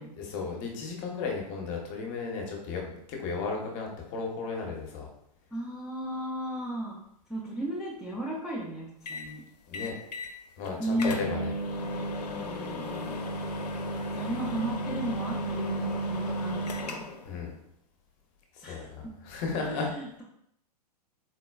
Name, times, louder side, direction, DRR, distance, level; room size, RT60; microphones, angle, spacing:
voice 1, 0.2-5.1 9.7-10.0 10.6-11.5 17.2-17.5 18.6-19.9, left 4 dB, 35° left, 1 dB, 0.7 m, -34 dB
voice 2, 5.5-6.9 7.3-9.4 10.8-11.2 12.3-13.2 14.1-17.0 18.6-19.1 19.6-20.2, right 1 dB, 5° right, -7 dB, 0.3 m, -35 dB
sound 1, 9.1-9.3 9.7-10.3 10.6-10.7 11.0-17.3, equal, 75° left, 0.5 m, -33 dB
3.9 x 2.1 x 2.2 m, 0.75 s
hypercardioid pair, 115°, 21 cm